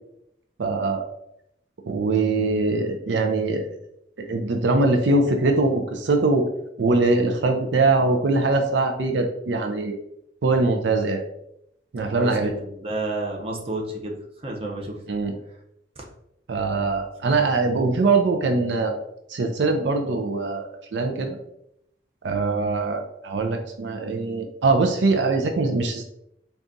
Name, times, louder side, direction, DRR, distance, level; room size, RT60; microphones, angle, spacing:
voice 1, 0.6-1.1 1.8-3.7 4.2-6.5 6.8-10.0 10.4-11.2 11.9-12.5 15.1-15.3 16.5-18.9 19.3-21.4 22.2-26.0, right 3 dB, 80° right, 5 dB, 0.5 m, -22 dB
voice 2, 12.0-14.2 14.4-15.0 16.0-16.1 16.6-16.9, right 2 dB, 35° right, -1 dB, 0.7 m, -31 dB
4.0 x 2.3 x 3.8 m, 0.77 s
head